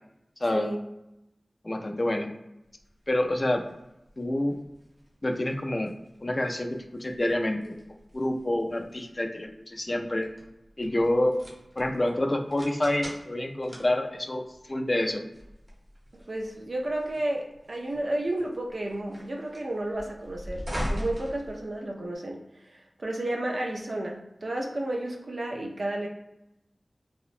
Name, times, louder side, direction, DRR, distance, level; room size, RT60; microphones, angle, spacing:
voice 1, 0.4-0.7 1.6-2.3 3.1-3.6 4.2-4.6 5.2-5.9 6.2-10.3 10.8-11.4 11.8-15.3, left 1 dB, 35° left, 3 dB, 0.3 m, -28 dB
sound 1, 2.8-22.2, equal, 35° right, 0.8 m, -42 dB
voice 2, 16.1-26.1, right 1 dB, 70° right, 0 dB, 0.4 m, -32 dB
2.7 x 2.0 x 2.4 m, 0.87 s
wide cardioid pair, 70°, 0 cm